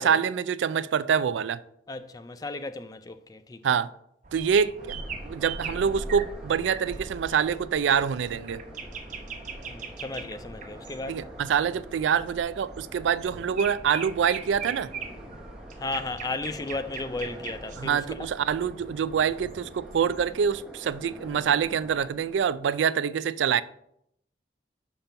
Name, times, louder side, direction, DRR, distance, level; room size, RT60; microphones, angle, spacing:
voice 1, 0.0-1.6 3.6-3.9 4.3-5.0 5.2-8.6 11.1-14.9 17.8-23.6, right 7 dB, 90° right, 0.3 m, -25 dB
voice 2, 1.9-3.6 9.6-11.2 15.8-18.3, left 2 dB, 20° left, 0.4 m, -35 dB
sound 1, 4.2-20.3, right 5 dB, 45° right, 0.8 m, -42 dB
sound 2, 4.8-22.7, equal, 5° right, 0.8 m, -44 dB
5.8 x 5.2 x 5.7 m
head